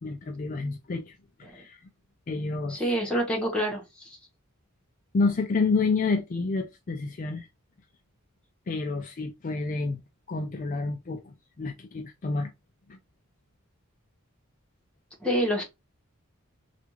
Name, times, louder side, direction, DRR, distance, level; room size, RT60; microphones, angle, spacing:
voice 1, 0.0-1.9 2.3-2.9 5.1-7.5 8.7-10.0 10.3-12.5 12.9-13.0, left 3 dB, 40° left, 0.4 m, -29 dB
voice 2, 2.7-4.2 15.2-15.6, equal, 5° left, 1.2 m, -27 dB
3.4 x 2.5 x 3.0 m
head